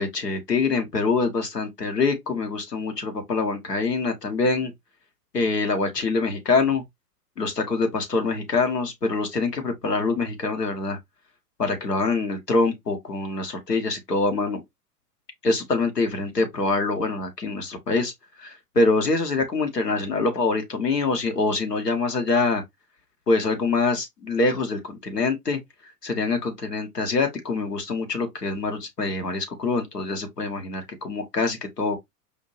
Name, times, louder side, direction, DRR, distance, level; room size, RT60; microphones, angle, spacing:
voice 1, 0.0-4.7 5.3-6.8 7.4-11.0 11.6-14.6 15.4-18.1 18.4-22.6 23.3-25.6 26.0-32.0, left 3 dB, 85° left, 1.4 m, -25 dB
4.9 x 2.7 x 2.8 m
figure-of-eight pair, 105°, 47 cm